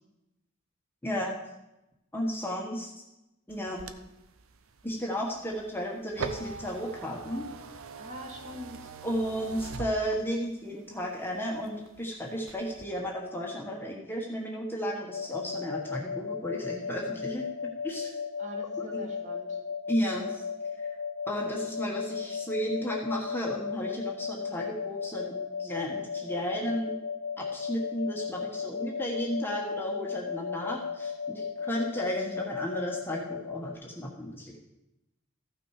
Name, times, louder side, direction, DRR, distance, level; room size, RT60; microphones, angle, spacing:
voice 1, 1.0-1.4 2.1-2.9 3.5-3.9 4.8-7.5 9.0-17.4 17.8-18.2 18.8-19.0 19.9-20.4 21.3-26.9 27.4-34.6, equal, 10° left, -1 dB, 1.2 m, -33 dB
sound 1, 3.5-10.6 11.0-12.0 12.4-12.8, right 4 dB, 80° right, 0.7 m, -42 dB
voice 2, 8.0-8.9 18.4-19.6, equal, 35° right, -1 dB, 2.1 m, -43 dB
sound 2, 15.1-33.7, left 6 dB, 60° left, 0.6 m, -36 dB
14.0 x 6.0 x 4.8 m, 0.92 s
head